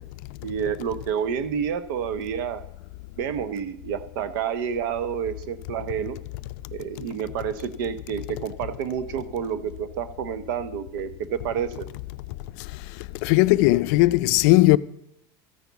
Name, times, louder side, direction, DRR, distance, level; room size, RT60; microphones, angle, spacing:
voice 1, 0.4-2.6 3.2-6.2 6.7-11.9, right 7 dB, 90° right, 0.9 m, -29 dB
voice 2, 13.2-14.8, left 19 dB, 65° left, 0.4 m, -17 dB
14.0 x 9.3 x 4.0 m
cardioid pair, 165°, 11 cm